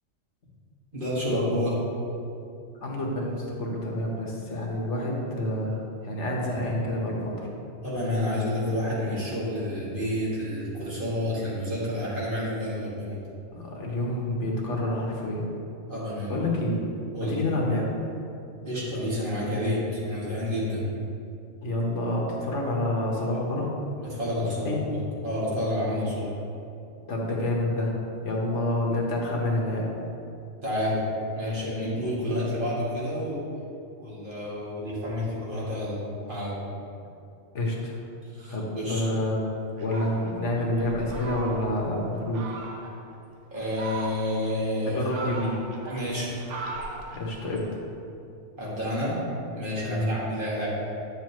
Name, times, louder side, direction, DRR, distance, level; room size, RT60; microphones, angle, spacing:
voice 1, 0.9-1.8 7.8-13.2 15.9-16.4 17.1-17.4 18.6-20.9 24.0-26.3 30.6-31.0 31.3-33.4 34.0-36.0 36.3-36.5 38.3-39.0 43.5-45.0 45.9-46.3 48.6-49.2 49.5-50.7, left 1 dB, 45° right, -8 dB, 2.2 m, -29 dB
voice 2, 2.8-7.5 13.5-15.5 16.3-16.9 17.2-17.8 21.6-23.7 24.4-24.8 27.1-27.9 28.2-29.9 37.5-37.9 38.5-39.5 39.8-42.4 44.8-45.6 47.1-47.7 49.9-50.2, left 1 dB, 80° left, -2 dB, 1.6 m, -28 dB
Fowl, 39.8-41.9 42.3-43.0 43.5-44.5 44.9-47.7, right 3 dB, 85° right, 1.2 m, -38 dB
9.7 x 6.9 x 3.1 m, 2.6 s
omnidirectional pair, 1.2 m